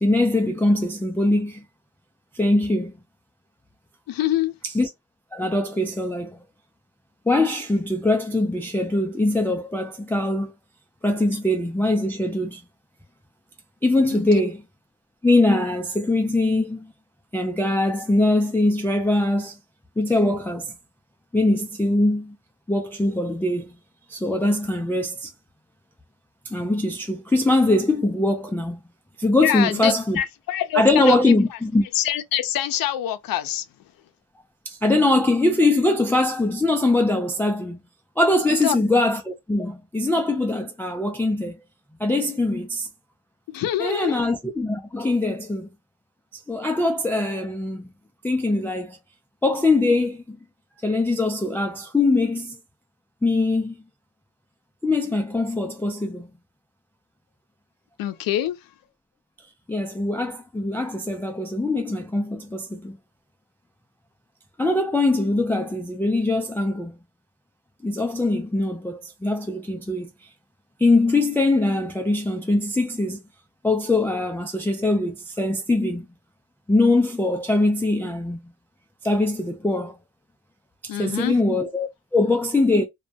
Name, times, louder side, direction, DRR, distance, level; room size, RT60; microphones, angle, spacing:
voice 1, 0.0-1.6 2.3-3.0 4.7-4.9 5.3-6.4 7.3-10.5 11.0-12.6 13.8-14.6 15.2-16.9 17.3-19.6 20.0-20.7 21.3-22.4 22.7-23.8 24.1-25.3 26.5-28.8 29.2-30.2 30.7-31.8 34.7-37.8 38.2-41.6 42.0-42.9 43.8-45.7 46.5-47.9 48.2-49.0 49.4-50.4 50.8-52.6 53.2-53.7 54.8-56.3 59.7-63.0 64.6-66.9 67.8-70.1 70.8-73.2 73.6-76.1 76.7-78.5 79.0-80.0 80.8-82.8, left 2 dB, 5° left, 0.3 m, -22 dB
voice 2, 4.1-4.5 14.1-14.2 29.4-31.4 31.9-33.6 38.6-38.8 43.5-44.2 58.0-58.6 80.9-81.4, left 11 dB, 70° left, 0.5 m, -25 dB
2.2 x 2.1 x 2.6 m
cardioid pair, 90°, 35 cm